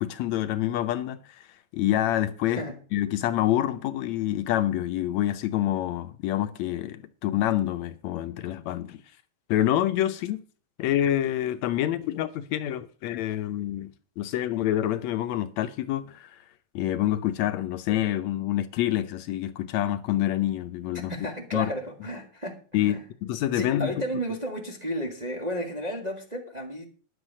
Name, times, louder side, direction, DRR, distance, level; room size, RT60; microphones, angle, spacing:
voice 1, 0.0-1.5 1.7-2.6 2.9-9.0 9.5-10.4 10.8-13.9 14.2-16.4 16.8-21.1 21.5-21.7 22.7-23.9, left 13 dB, 75° left, 1.9 m, -27 dB
voice 2, 2.5-2.8 20.9-23.0 23.5-26.9, equal, 20° right, 1.3 m, -33 dB
10.5 x 8.0 x 6.3 m
omnidirectional pair, 3.3 m